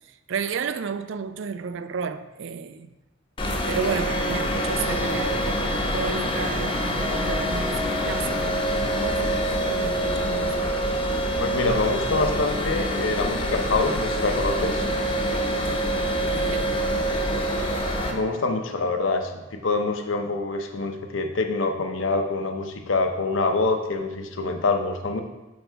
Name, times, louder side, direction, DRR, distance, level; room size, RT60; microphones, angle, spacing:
voice 1, 0.3-2.9 3.7-5.4 5.9-8.6 9.0-10.7 16.3-17.1, right 5 dB, 70° right, 0.4 m, -32 dB
sound 1, 3.4-18.1, right 1 dB, 25° left, 0.8 m, -26 dB
Wind instrument woodwind instrument, 7.0-10.7, left 5 dB, ahead, 0.4 m, -35 dB
voice 2, 11.4-14.8 18.1-25.2, left 3 dB, 80° left, 0.7 m, -25 dB
8.0 x 3.4 x 4.6 m
head